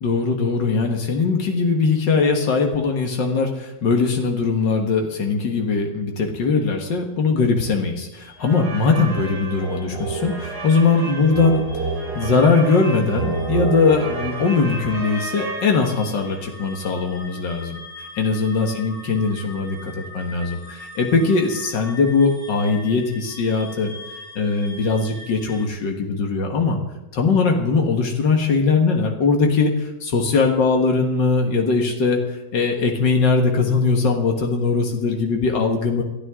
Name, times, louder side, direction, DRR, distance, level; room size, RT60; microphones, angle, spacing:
voice 1, 0.0-11.7 12.1-23.9 24.4-26.8 27.1-36.0, left 4 dB, 90° left, 2 dB, 2.3 m, -20 dB
sound 1, 8.0-25.7, left 2 dB, 50° left, 7.7 m, -43 dB
sound 2, 8.4-16.3, right 3 dB, 90° right, 3.5 m, -29 dB
sound 3, 13.3-21.6, left 5 dB, 20° right, 5.8 m, -47 dB
28.5 x 12.5 x 3.7 m, 1.0 s
omnidirectional pair, 1.9 m